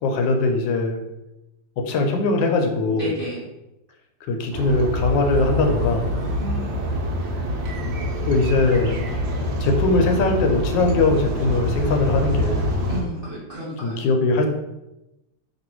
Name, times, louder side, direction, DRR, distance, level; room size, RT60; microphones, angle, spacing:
voice 1, 0.0-1.0 1.8-3.1 4.3-6.1 8.2-8.9 9.6-12.7 13.8-14.5, left 2 dB, 80° left, 3 dB, 1.3 m, -21 dB
voice 2, 2.9-3.4 6.2-6.8 12.9-14.0, equal, 45° right, -8 dB, 0.7 m, -31 dB
sound 1, 4.5-13.0, left 1 dB, 80° right, 1.4 m, -25 dB
3.0 x 2.9 x 4.4 m, 0.94 s
omnidirectional pair, 2.0 m